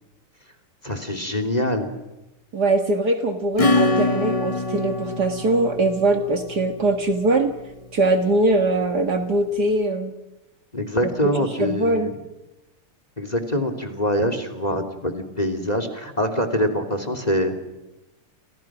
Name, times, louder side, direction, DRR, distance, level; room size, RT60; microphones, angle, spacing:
voice 1, 0.8-1.9 10.7-12.1 13.2-17.6, equal, 20° left, 9 dB, 2.8 m, -24 dB
voice 2, 2.5-7.5 7.9-10.1 11.2-11.3 11.6-12.1, right 2 dB, 50° right, 6 dB, 2.2 m, -21 dB
Acoustic guitar / Strum, 3.6-7.9, left 2 dB, 45° left, 0.4 m, -25 dB
29.5 x 28.0 x 6.1 m, 1.0 s
omnidirectional pair, 2.4 m